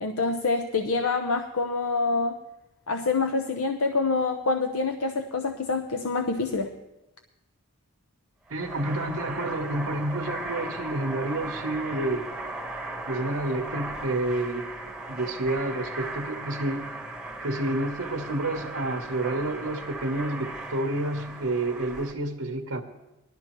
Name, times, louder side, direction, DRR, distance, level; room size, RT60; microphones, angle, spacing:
voice 1, 0.0-2.4 2.9-6.7, left 3 dB, 75° left, 5 dB, 0.7 m, -26 dB
sound 1, 8.5-22.1, right 2 dB, 5° right, 1.1 m, -37 dB
voice 2, 8.5-12.3 13.1-14.7 15.1-16.9 17.4-22.8, right 2 dB, 65° right, 1 dB, 0.9 m, -29 dB
19.5 x 12.0 x 3.0 m, 0.99 s
head